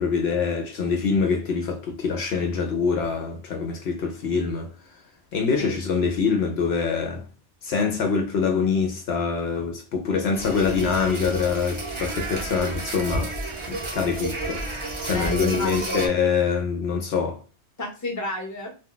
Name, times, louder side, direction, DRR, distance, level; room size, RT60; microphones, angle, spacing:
voice 1, 0.0-4.7 5.3-7.2 7.6-13.3 13.7-14.7 15.0-17.4, left 5 dB, 70° left, 0.8 m, -24 dB
sound 1, 10.3-16.1, right 2 dB, 35° right, 0.5 m, -31 dB
voice 2, 15.1-16.1 17.8-18.7, left 2 dB, 20° left, 0.6 m, -31 dB
2.3 x 2.2 x 3.6 m
omnidirectional pair, 1.2 m